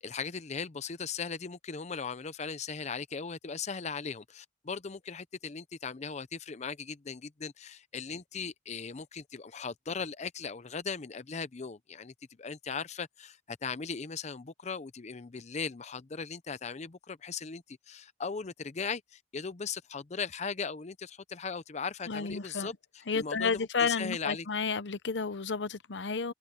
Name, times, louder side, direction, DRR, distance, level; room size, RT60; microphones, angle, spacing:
voice 1, 0.0-12.1 12.4-22.7 23.1-24.5, left 5 dB, 40° left, 0.6 m, -38 dB
voice 2, 22.1-22.7 23.1-26.3, left 5 dB, 90° left, 0.8 m, -31 dB
head